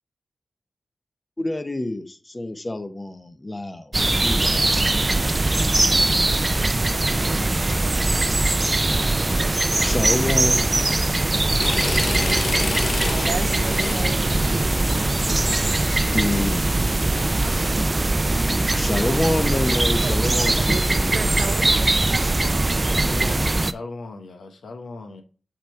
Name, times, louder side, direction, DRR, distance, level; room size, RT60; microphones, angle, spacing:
voice 1, 1.4-3.9 4.2-4.6 9.8-10.7 15.9-16.7 18.8-21.1, left 1 dB, 30° left, 1.1 m, -27 dB
sound 1, 3.9-23.7, right 2 dB, 30° right, 0.4 m, -21 dB
voice 2, 11.2-16.3 19.7-22.9 23.3-23.4, right 5 dB, 85° right, 0.5 m, -38 dB
sound 2, 11.6-16.5, left 4 dB, 70° left, 0.6 m, -30 dB
voice 3, 22.8-25.2, left 3 dB, 90° left, 1.1 m, -38 dB
7.5 x 3.6 x 4.6 m
cardioid pair, 55°, 0 cm